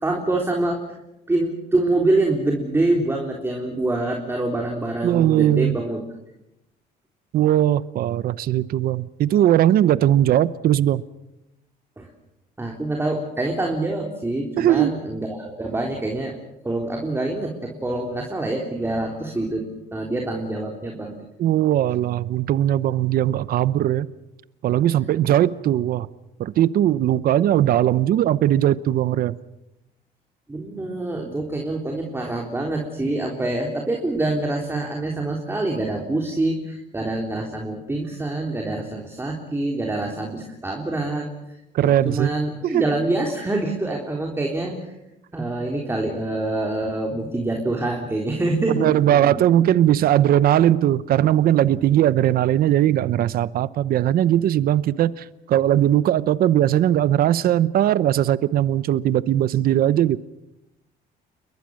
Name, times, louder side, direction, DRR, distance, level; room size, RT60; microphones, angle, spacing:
voice 1, 0.0-1.0 1.3-6.0 12.0-12.1 12.6-16.4 16.6-21.2 30.5-41.3 42.1-44.9 45.3-49.4, right 2 dB, 15° right, 3.6 m, -25 dB
voice 2, 5.0-5.8 7.3-11.0 14.6-14.9 21.4-24.1 24.6-26.1 26.4-29.4 41.7-42.3 42.6-42.8 48.7-60.2, right 12 dB, 60° right, 0.8 m, -19 dB
29.0 x 22.5 x 6.5 m
cardioid pair, 110°, 17 cm